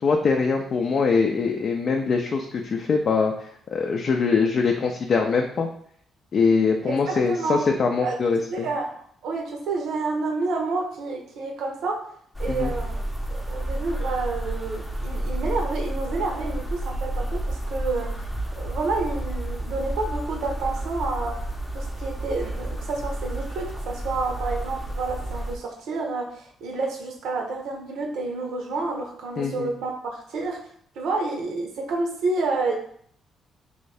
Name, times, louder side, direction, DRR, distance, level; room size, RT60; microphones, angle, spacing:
voice 1, 0.0-5.7 6.3-8.7 12.5-12.7 29.4-29.7, left 4 dB, 50° left, 2 dB, 0.4 m, -23 dB
voice 2, 6.9-7.6 8.0-8.1 8.5-12.0 12.4-13.0 13.3-18.1 18.6-21.4 21.7-30.6 30.9-32.8, right 3 dB, 80° right, 1 dB, 0.8 m, -29 dB
sound 1, 12.3-25.6, right 1 dB, 5° left, 0.6 m, -30 dB
3.1 x 2.6 x 3.3 m, 0.62 s
cardioid pair, 90°, 0 cm